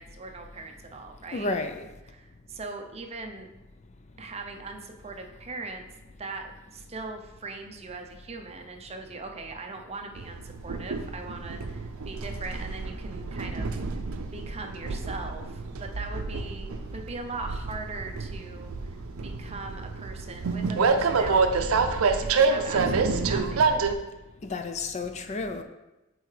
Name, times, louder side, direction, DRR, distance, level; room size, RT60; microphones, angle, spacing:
voice 1, 0.0-1.5 2.1-3.5 4.2-5.9 6.2-18.9 19.2-23.7, right 3 dB, 30° right, 0.6 m, -40 dB
voice 2, 1.3-1.9 24.4-25.6, left 3 dB, 35° left, 0.4 m, -31 dB
Train, 10.2-23.9, right 4 dB, 80° right, 0.5 m, -28 dB
7.7 x 4.7 x 3.3 m
head